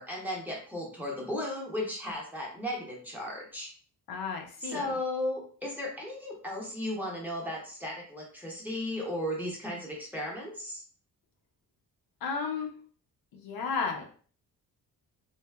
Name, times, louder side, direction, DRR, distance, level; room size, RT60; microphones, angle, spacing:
voice 1, 0.0-3.7 4.6-10.8, left 1 dB, 5° right, -3 dB, 0.6 m, -35 dB
voice 2, 4.1-4.8 12.2-12.7 13.3-14.0, left 5 dB, 75° left, 1 dB, 0.7 m, -33 dB
3.2 x 2.1 x 2.2 m, 0.44 s
wide cardioid pair, 150°, 37 cm